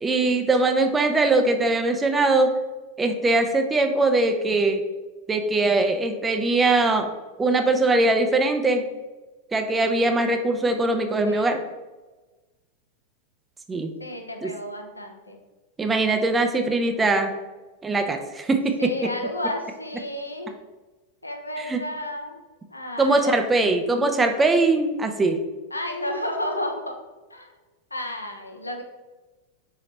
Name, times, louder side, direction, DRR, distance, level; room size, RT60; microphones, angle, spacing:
voice 1, 0.0-2.6 3.0-4.8 5.3-7.1 7.4-8.9 9.5-11.6 13.7-13.9 14.4-14.5 15.8-17.4 17.8-19.1 21.6-21.8 23.0-25.4, right 2 dB, 15° right, 6 dB, 0.4 m, -21 dB
voice 2, 11.3-11.7 14.0-15.4 18.8-20.5 21.2-22.4 22.7-23.4 25.7-27.0 27.3-27.5 27.9-28.8, left 1 dB, 85° left, 3 dB, 0.5 m, -32 dB
3.9 x 2.8 x 3.2 m, 1.2 s
figure-of-eight pair, 90°, 0 cm